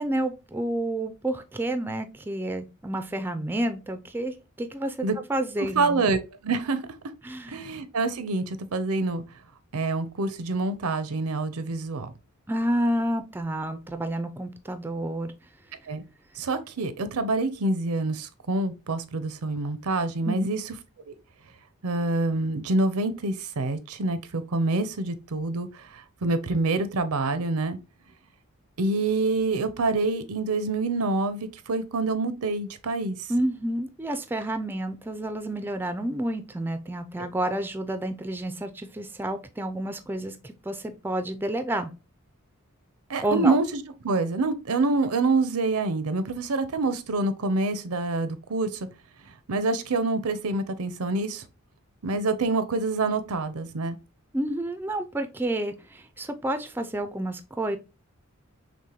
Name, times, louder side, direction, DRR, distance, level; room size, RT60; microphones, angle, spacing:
voice 1, 0.0-6.0 7.2-7.6 12.5-15.3 20.3-20.5 33.3-41.9 43.2-43.6 54.3-57.8, right 1 dB, 10° right, 0.3 m, -30 dB
voice 2, 5.7-6.8 7.5-9.2 9.7-12.1 15.9-16.0 16.4-20.6 21.1-21.2 21.8-27.8 28.8-33.2 43.1-48.9 49.5-51.4 52.0-54.0, right 3 dB, 80° right, 0.6 m, -26 dB
6.0 x 2.1 x 2.8 m
head